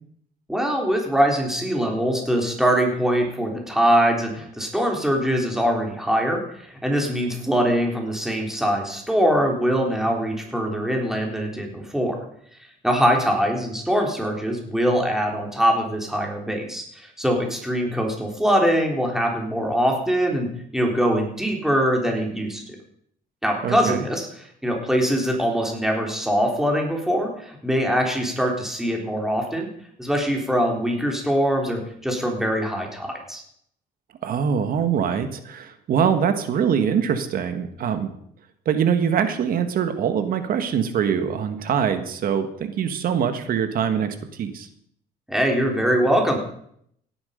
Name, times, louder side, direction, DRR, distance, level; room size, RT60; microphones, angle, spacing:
voice 1, 0.5-12.2 12.8-20.5 20.7-22.6 23.4-24.3 24.6-29.7 30.0-33.4 45.3-46.4, equal, ahead, 1 dB, 3.7 m, -23 dB
voice 2, 23.6-24.0 34.2-38.1 38.6-44.7, right 7 dB, 60° right, 9 dB, 1.7 m, -23 dB
17.0 x 11.0 x 5.2 m, 0.68 s
cardioid pair, 110°, 17 cm